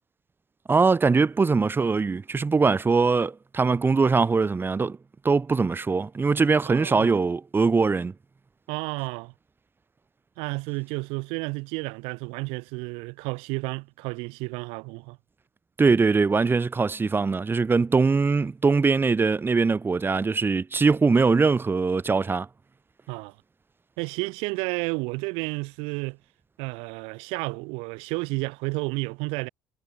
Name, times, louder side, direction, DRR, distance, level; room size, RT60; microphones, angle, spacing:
voice 1, 0.7-5.0 5.2-8.1 15.8-22.5, right 4 dB, 25° right, 1.3 m, -22 dB
voice 2, 6.6-7.1 8.7-9.3 10.4-15.2 23.1-23.3 24.0-26.2 26.6-29.5, right 29 dB, 80° right, 3.4 m, -31 dB
supercardioid pair, 85°, 9 cm